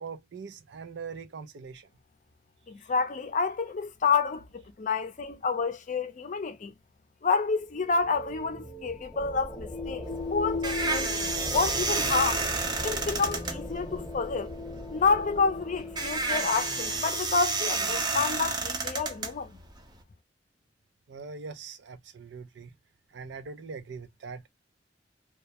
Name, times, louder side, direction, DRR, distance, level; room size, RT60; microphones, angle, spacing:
voice 1, 0.0-1.9 21.1-22.7 23.1-24.5, right 5 dB, 80° right, 0.4 m, -42 dB
voice 2, 2.7-6.7 7.2-10.0 10.3-11.1 11.5-12.4 12.8-14.5 14.9-19.5, left 4 dB, 45° left, 0.5 m, -29 dB
sound 1, 7.4-17.9, left 2 dB, 5° left, 0.8 m, -38 dB
sound 2, 10.0-20.0, right 3 dB, 25° right, 0.5 m, -31 dB
2.2 x 2.0 x 2.7 m
head